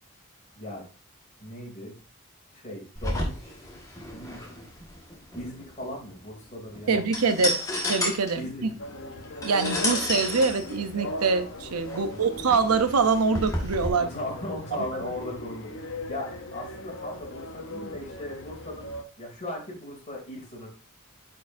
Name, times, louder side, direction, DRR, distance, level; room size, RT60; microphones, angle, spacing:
voice 1, 1.4-1.9 2.5-3.6 4.1-4.5 5.3-7.5 8.3-8.9 12.1-12.3 13.9-20.7, left 1 dB, 30° left, 2.7 m, -38 dB
sound 1, 3.0-13.9, left 1 dB, 15° left, 1.5 m, -33 dB
voice 2, 6.9-7.6 7.9-8.7 9.4-14.1, right 4 dB, 90° right, 0.7 m, -24 dB
sound 2, 8.8-19.0, left 1 dB, 55° left, 0.8 m, -39 dB
9.3 x 4.5 x 2.6 m
head